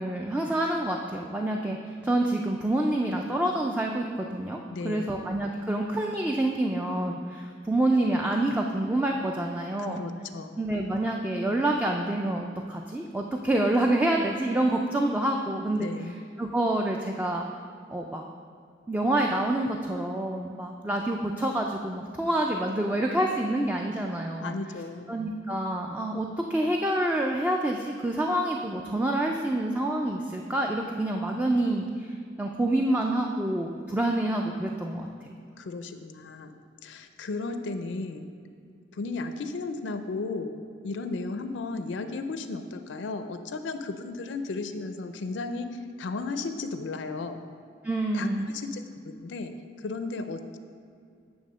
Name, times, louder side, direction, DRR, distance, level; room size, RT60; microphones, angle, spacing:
voice 1, 0.0-4.6 4.8-10.0 10.6-15.9 16.4-17.5 17.9-18.2 18.9-24.5 25.1-35.1 47.8-48.4, right 1 dB, 10° right, 1 dB, 0.3 m, -27 dB
voice 2, 4.7-5.2 9.8-10.6 15.8-16.2 24.4-25.1 35.6-36.5 36.8-38.3 38.9-40.6 40.8-47.4 48.1-49.5 49.8-50.6, left 3 dB, 75° left, 8 dB, 0.4 m, -34 dB
8.7 x 3.5 x 6.2 m, 2.4 s
head